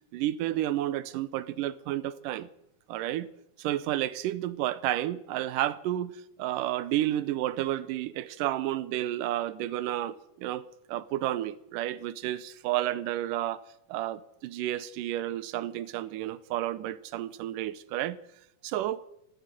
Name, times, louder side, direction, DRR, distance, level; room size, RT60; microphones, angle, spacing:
voice 1, 0.1-2.5 2.9-3.3 3.6-6.1 6.4-13.6 13.9-18.2 18.6-19.0, right 13 dB, 85° right, 2.3 m, -31 dB
15.5 x 9.8 x 9.0 m
omnidirectional pair, 3.7 m